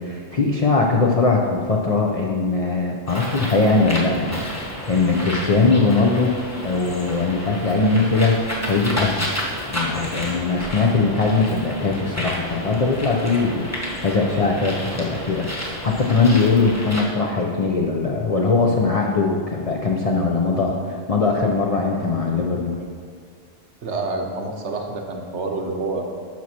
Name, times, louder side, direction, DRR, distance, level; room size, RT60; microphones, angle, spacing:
voice 1, 0.0-6.4 6.6-9.3 9.7-13.7 14.0-15.5 15.8-22.8, left 3 dB, 45° left, -1 dB, 0.5 m, -20 dB
Bird, 3.1-17.0, equal, 15° left, 1.1 m, -31 dB
voice 2, 23.8-26.0, right 3 dB, 65° right, 2 dB, 1.1 m, -27 dB
10.0 x 6.2 x 2.9 m, 2.2 s
omnidirectional pair, 1.3 m